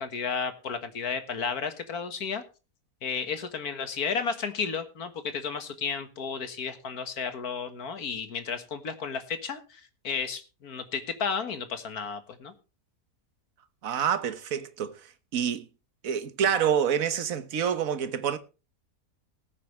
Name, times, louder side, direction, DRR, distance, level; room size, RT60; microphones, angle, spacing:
voice 1, 0.0-2.4 3.0-12.5, left 6 dB, 75° left, 2.0 m, -33 dB
voice 2, 13.8-15.7 16.0-18.4, right 8 dB, 65° right, 1.5 m, -27 dB
19.5 x 8.5 x 3.2 m
omnidirectional pair, 1.6 m